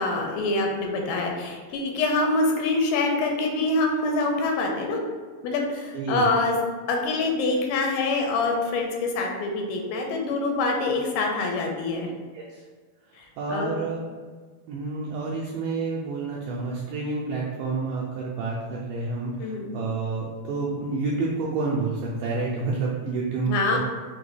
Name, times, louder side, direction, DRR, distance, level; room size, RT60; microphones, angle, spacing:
voice 1, 0.0-5.0 5.4-6.6 6.9-12.1 13.2-13.7 19.4-19.8 23.5-23.8, left 3 dB, 90° left, 1 dB, 2.4 m, -25 dB
voice 2, 5.9-6.3 12.3-12.6 13.4-14.0 14.7-23.8, right 4 dB, 85° right, -4 dB, 1.9 m, -29 dB
5.7 x 2.2 x 3.2 m, 1.5 s
omnidirectional pair, 4.2 m